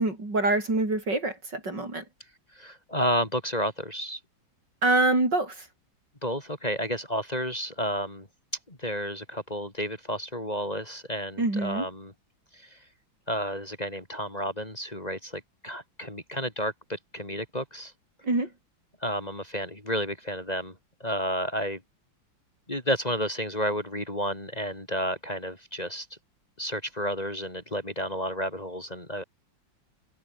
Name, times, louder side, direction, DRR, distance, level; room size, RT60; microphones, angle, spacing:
voice 1, 0.0-2.0 4.8-5.6 11.4-11.9 18.2-18.5, right 2 dB, 65° right, 7.4 m, -25 dB
voice 2, 2.5-4.2 6.2-8.3 8.7-12.1 12.5-12.8 13.3-17.9 19.0-20.7 21.0-21.8 22.7-26.2 26.6-29.2, equal, 20° left, 3.4 m, -31 dB
omnidirectional pair, 2.1 m